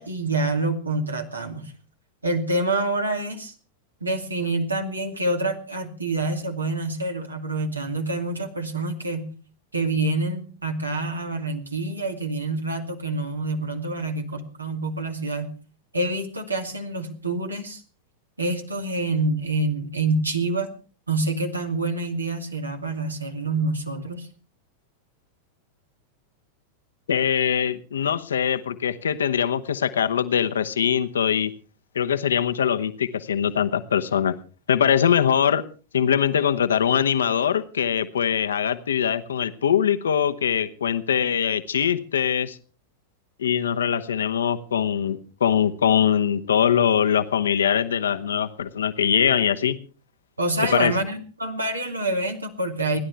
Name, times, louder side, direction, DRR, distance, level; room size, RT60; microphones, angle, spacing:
voice 1, 0.0-1.7 2.2-3.5 4.0-9.3 9.7-15.5 15.9-17.8 18.4-20.7 21.1-24.3 50.4-53.0, right 2 dB, 80° right, 5 dB, 2.3 m, -27 dB
voice 2, 27.1-31.5 31.9-34.3 34.7-35.6 35.9-42.6 43.4-49.8 50.7-50.9, left 8 dB, 65° left, 9 dB, 1.0 m, -22 dB
29.5 x 11.0 x 3.4 m, 0.39 s
figure-of-eight pair, 90°, 0 cm